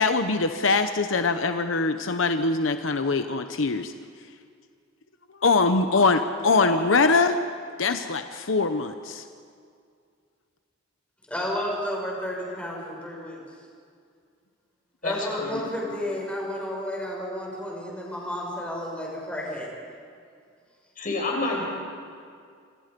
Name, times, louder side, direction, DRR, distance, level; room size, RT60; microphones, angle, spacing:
voice 1, 0.0-3.9 5.4-7.4 7.8-9.2, left 3 dB, 80° left, 8 dB, 1.0 m, -23 dB
voice 2, 11.3-13.4 15.0-19.7, left 1 dB, 5° left, -3 dB, 6.2 m, -32 dB
voice 3, 15.0-15.6 21.0-21.6, left 2 dB, 45° left, 0 dB, 6.1 m, -28 dB
28.0 x 25.5 x 5.3 m, 2.2 s
head